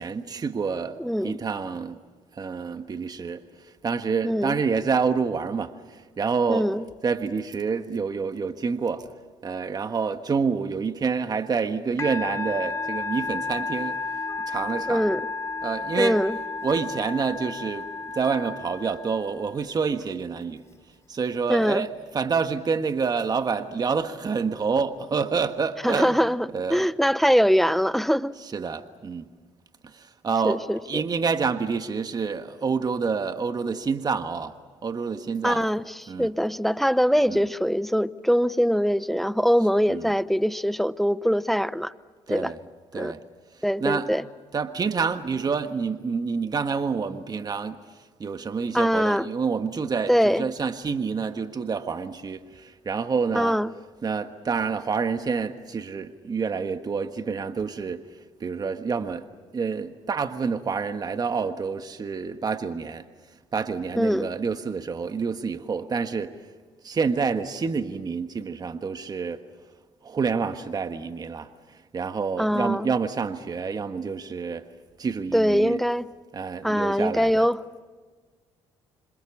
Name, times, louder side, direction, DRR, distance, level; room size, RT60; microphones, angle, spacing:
voice 1, 0.0-2.0 2.3-3.4 3.8-6.7 7.0-9.1 9.4-14.0 14.5-15.1 15.6-16.2 16.6-17.9 18.1-20.6 21.1-26.2 26.5-26.9 28.4-29.3 29.8-34.5 34.8-35.6 36.1-36.3 37.3-37.4 39.9-40.1 42.3-42.6 42.9-43.2 43.8-44.1 44.5-47.8 48.2-53.6 54.0-58.0 58.4-59.3 59.5-63.0 63.5-66.3 66.8-69.4 70.0-71.5 71.9-74.6 75.0-75.8 76.3-77.5, right 5 dB, 35° right, 1.5 m, -28 dB
voice 2, 1.0-1.4 4.2-4.6 6.5-6.9 14.9-15.2 16.0-16.4 21.5-21.9 25.8-28.3 30.4-31.0 35.4-41.9 42.3-42.5 42.9-43.1 43.6-44.2 48.7-49.3 50.1-50.5 53.3-53.7 64.0-64.3 72.4-72.9 75.3-76.1 76.6-77.6, equal, ahead, 0.7 m, -23 dB
Musical instrument, 12.0-19.6, left 4 dB, 25° left, 1.2 m, -32 dB
27.0 x 26.5 x 7.2 m
supercardioid pair, 80°, 11 cm